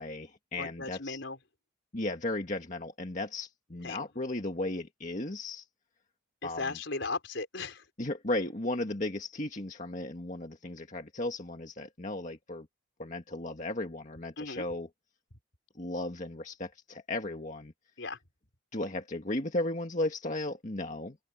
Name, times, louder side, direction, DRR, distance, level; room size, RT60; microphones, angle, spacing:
voice 1, 0.0-1.2 1.9-5.7 6.4-6.8 8.0-12.7 13.0-14.9 15.8-17.7 18.7-21.2, left 2 dB, 40° left, 1.9 m, -35 dB
voice 2, 0.6-1.4 3.8-4.0 6.4-7.8 14.4-14.7 18.0-18.2, left 3 dB, 70° left, 4.9 m, -36 dB
open air
head